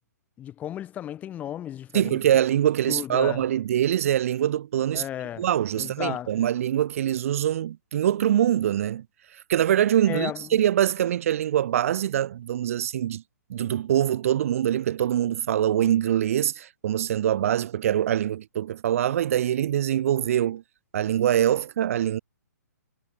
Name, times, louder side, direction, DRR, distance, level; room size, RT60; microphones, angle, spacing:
voice 1, 0.4-2.2 2.9-3.4 4.9-5.5 5.7-6.3 10.1-10.5, left 11 dB, 15° left, 0.9 m, -34 dB
voice 2, 1.9-5.0 5.4-9.0 9.5-13.2 13.5-20.6 20.9-22.2, right 11 dB, 50° right, 0.6 m, -24 dB
hypercardioid pair, 135°, 10 cm